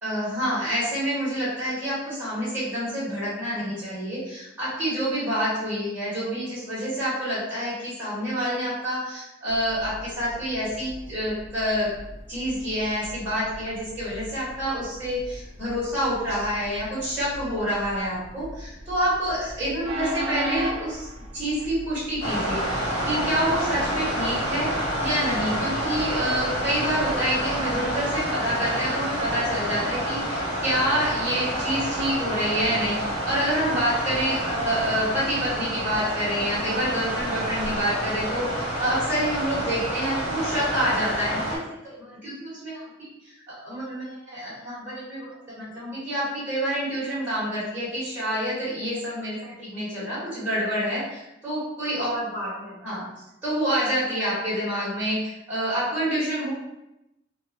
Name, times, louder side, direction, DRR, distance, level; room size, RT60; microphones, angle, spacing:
voice 1, 0.0-11.9 12.3-21.1 21.3-24.7 25.0-42.9 43.5-53.0 53.4-56.5, equal, 10° right, -11 dB, 1.3 m, -27 dB
Train, 9.5-28.0, right 1 dB, 30° right, 0.4 m, -40 dB
sound 1, 22.2-41.6, right 1 dB, 35° left, 1.2 m, -28 dB
2.9 x 2.4 x 2.7 m, 0.89 s
head